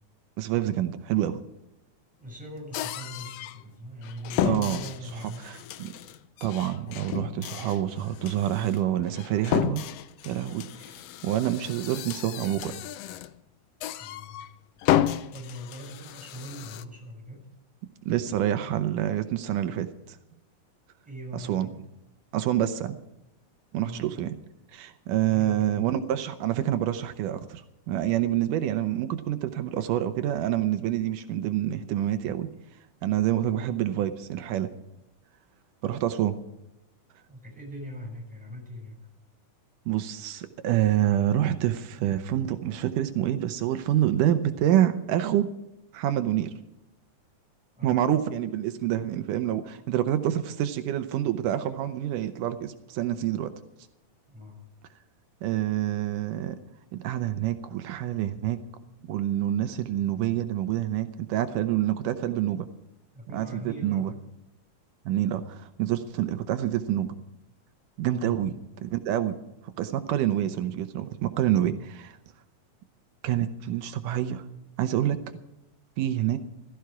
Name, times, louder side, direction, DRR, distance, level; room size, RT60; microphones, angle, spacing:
voice 1, 0.4-1.4 4.4-4.8 5.1-5.9 6.4-9.8 10.2-10.9 11.2-12.7 18.1-20.2 21.3-21.7 22.3-23.0 23.7-24.4 24.7-27.6 27.9-32.5 33.0-34.7 35.8-36.4 39.9-45.5 45.9-46.5 47.8-53.5 55.4-56.6 56.9-58.6 59.1-62.7 63.3-64.1 65.1-67.2 68.0-69.4 69.8-72.2 73.2-74.4 74.8-75.2 76.0-76.4, right 12 dB, 85° right, 9 dB, 2.4 m, -27 dB
voice 2, 2.2-5.5 14.0-14.4 15.3-17.5 21.0-21.7 23.7-24.0 25.3-25.8 33.4-33.7 37.3-39.0 47.8-48.0 54.3-54.6 63.1-64.3 68.1-68.4, equal, ahead, -1 dB, 6.1 m, -41 dB
sound 1, 2.7-3.6 4.0-13.4 13.8-14.5 14.8-16.8, left 12 dB, 80° left, 1.4 m, -32 dB
16.5 x 14.0 x 4.7 m, 0.90 s
omnidirectional pair, 3.7 m